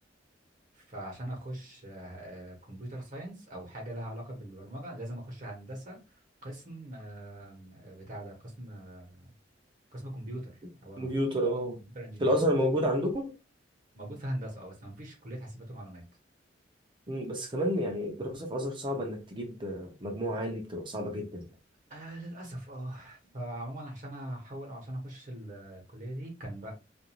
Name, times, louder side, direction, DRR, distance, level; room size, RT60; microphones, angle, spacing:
voice 1, 0.7-6.0 6.4-9.3 9.9-11.2 11.9-12.4 13.9-16.0 21.9-26.7, right 1 dB, 45° right, 1.0 m, -41 dB
voice 2, 11.0-11.8 12.2-13.3 17.1-21.4, equal, 25° right, 0.6 m, -30 dB
2.5 x 2.3 x 2.9 m
head